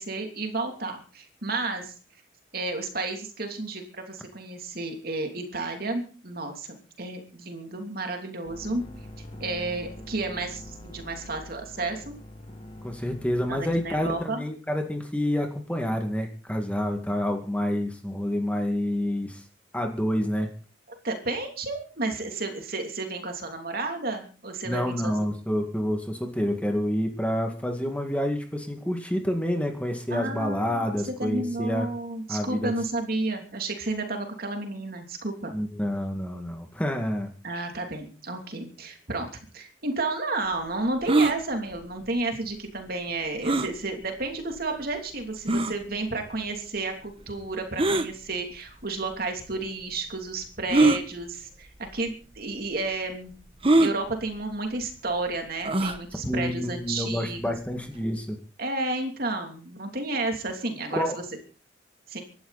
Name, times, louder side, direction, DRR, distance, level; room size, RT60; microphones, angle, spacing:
voice 1, 0.0-1.9 2.5-8.8 9.4-12.1 13.5-14.5 20.9-25.3 30.1-35.5 37.4-39.3 39.5-53.3 53.8-57.5 58.6-61.2 62.1-62.2, right 2 dB, 50° right, 4 dB, 3.1 m, -32 dB
sound 1, 8.4-14.2, left 1 dB, 30° left, 2.4 m, -44 dB
voice 2, 12.8-19.4 19.7-20.5 24.7-31.9 32.3-32.7 35.5-37.3 56.3-58.4 60.9-61.2, equal, 5° left, 4 dB, 2.1 m, -28 dB
sound 2, 41.1-41.4 43.4-43.7 44.5-44.6 45.5-45.7 47.8-48.1 49.1-49.2 50.7-51.0 51.9-52.1 52.4-52.5 53.6-53.9 55.6-56.0, right 2 dB, 30° right, 1.2 m, -21 dB
25.5 x 12.0 x 4.2 m, 0.39 s
head